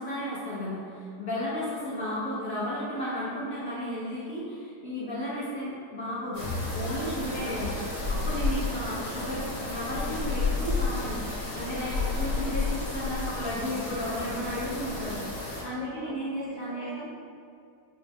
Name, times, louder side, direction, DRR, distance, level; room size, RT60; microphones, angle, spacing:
voice 1, 0.0-7.8 8.1-15.2 15.6-16.9, equal, 55° left, -10 dB, 1.1 m, -33 dB
sound 1, 6.3-15.6, left 3 dB, 70° left, 1.9 m, -31 dB
voice 2, 7.2-7.8 15.7-17.1, right 2 dB, 60° right, -8 dB, 1.2 m, -44 dB
6.3 x 3.2 x 2.2 m, 2.4 s
omnidirectional pair, 2.2 m